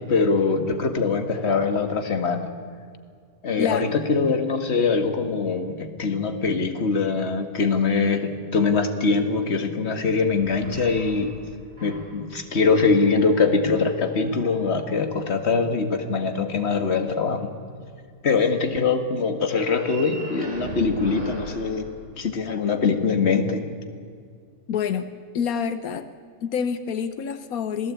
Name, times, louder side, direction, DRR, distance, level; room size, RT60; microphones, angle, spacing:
voice 1, 0.0-2.5 3.4-11.4 11.8-17.5 18.2-21.9 22.2-23.7, left 4 dB, 50° left, 7 dB, 2.0 m, -23 dB
sound 1, 10.3-12.3 12.9-15.3 19.4-22.6, right 2 dB, 30° right, 7.2 m, -40 dB
voice 2, 24.7-26.1 26.4-27.9, left 7 dB, 90° left, 11 dB, 1.4 m, -27 dB
26.5 x 17.5 x 8.5 m, 2.2 s
omnidirectional pair, 1.5 m